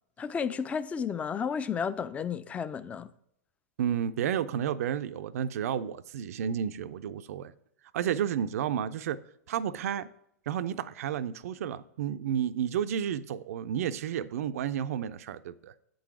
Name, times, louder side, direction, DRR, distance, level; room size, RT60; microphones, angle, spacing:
voice 1, 0.2-3.1, left 6 dB, 15° left, 0.3 m, -32 dB
voice 2, 3.8-7.5 7.9-9.2 9.5-10.1 10.5-15.7, right 9 dB, 60° right, 0.4 m, -31 dB
8.5 x 3.9 x 4.7 m
hypercardioid pair, 110°, 9 cm